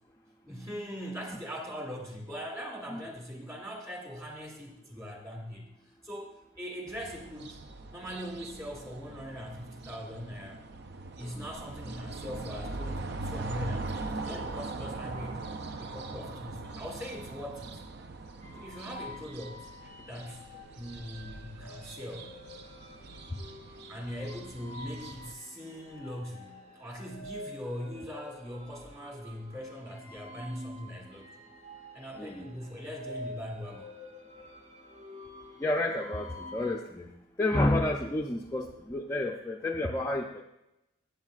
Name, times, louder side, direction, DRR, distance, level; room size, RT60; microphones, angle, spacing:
voice 1, 0.5-5.7 6.0-6.3 6.6-7.6 7.9-10.6 11.2-15.4 15.8-17.8 18.6-19.6 20.1-20.5 20.8-22.3 23.9-31.4 31.9-33.9, equal, 15° right, -1 dB, 2.0 m, -41 dB
sound 1, 6.9-25.3, right 3 dB, 50° right, 0.5 m, -41 dB
sound 2, 18.4-36.8, left 1 dB, 35° right, 1.1 m, -48 dB
voice 2, 32.1-32.5 35.6-37.1 37.4-40.4, left 1 dB, 15° left, -1 dB, 0.4 m, -30 dB
15.0 x 8.2 x 2.4 m, 0.89 s
head